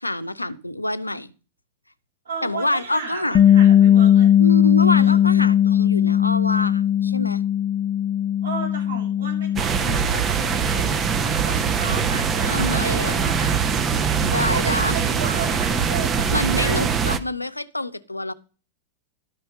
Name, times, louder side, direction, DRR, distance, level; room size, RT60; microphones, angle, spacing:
voice 1, 0.0-1.3 2.4-3.4 4.4-7.4 12.5-13.2 14.2-15.1 16.3-18.3, left 1 dB, 85° left, 14 dB, 0.5 m, -27 dB
voice 2, 2.2-4.3 4.9-5.2 8.4-11.0 11.4-13.6 14.0-16.8, right 3 dB, 75° right, -3 dB, 7.6 m, -34 dB
Bass guitar, 3.3-9.6, left 10 dB, 30° left, 0.4 m, -17 dB
sound 1, 9.6-17.2, right 6 dB, 25° right, 0.8 m, -22 dB
11.5 x 5.6 x 6.4 m, 0.36 s
figure-of-eight pair, 90°, 0 cm